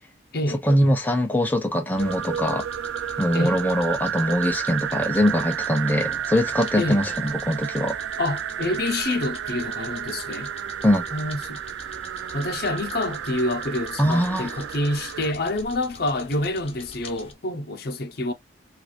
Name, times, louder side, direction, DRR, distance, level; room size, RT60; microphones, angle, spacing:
voice 1, 0.6-2.6 3.2-8.0 10.8-11.0 14.0-14.5, equal, 10° left, 0.4 m, -22 dB
sound 1, 1.9-17.3, left 3 dB, 30° left, 1.1 m, -45 dB
sound 2, 2.0-15.3, right 9 dB, 85° right, 0.3 m, -31 dB
voice 2, 8.2-10.5 11.1-11.6 12.3-18.3, left 2 dB, 55° left, 0.8 m, -27 dB
4.6 x 2.5 x 2.4 m
head